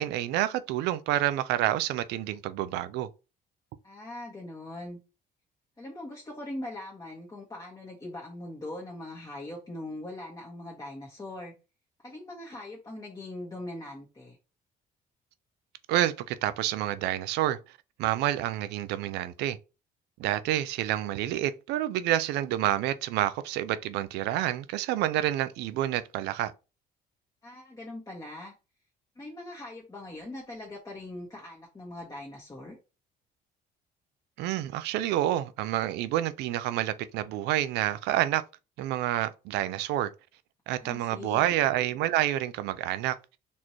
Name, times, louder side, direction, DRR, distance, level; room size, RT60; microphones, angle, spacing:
voice 1, 0.0-3.1 15.9-17.6 18.0-19.6 20.2-26.5 34.4-38.4 38.8-40.1 40.7-43.2, right 13 dB, 85° right, 0.4 m, -28 dB
voice 2, 3.8-5.0 5.8-11.5 12.0-14.4 27.4-28.5 29.1-32.8 40.8-41.5, left 1 dB, 20° left, 1.4 m, -41 dB
4.2 x 3.1 x 2.9 m
cardioid pair, 110°, 17 cm